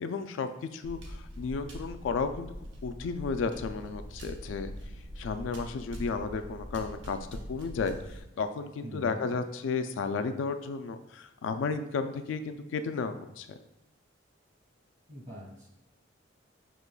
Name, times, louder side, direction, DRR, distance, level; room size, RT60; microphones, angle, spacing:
voice 1, 0.0-2.5 2.8-4.7 5.2-7.2 7.5-13.6, left 4 dB, 80° left, 9 dB, 0.3 m, -33 dB
sound 1, 0.8-8.2, equal, 70° right, 0.8 m, -43 dB
voice 2, 8.8-9.3 15.1-15.8, equal, 40° right, -4 dB, 1.5 m, -44 dB
6.2 x 2.9 x 2.2 m, 0.88 s
head